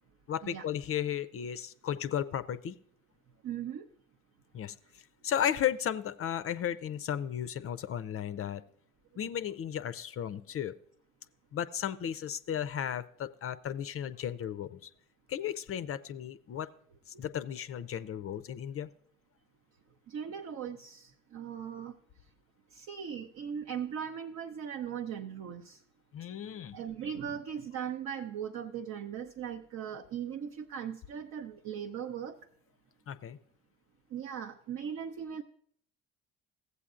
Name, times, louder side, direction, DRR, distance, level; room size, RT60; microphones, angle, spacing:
voice 1, 0.3-2.8 4.5-4.7 5.2-8.6 9.2-10.7 11.5-14.9 15.3-16.7 17.1-18.9 26.1-26.8 33.1-33.4, left 9 dB, 40° left, 14 dB, 0.5 m, -34 dB
voice 2, 3.4-3.8 20.1-21.9 22.7-25.8 26.7-32.4 34.1-35.4, right 8 dB, 50° right, 3 dB, 0.7 m, -39 dB
15.0 x 8.1 x 2.5 m, 0.63 s
hypercardioid pair, 55°, 37 cm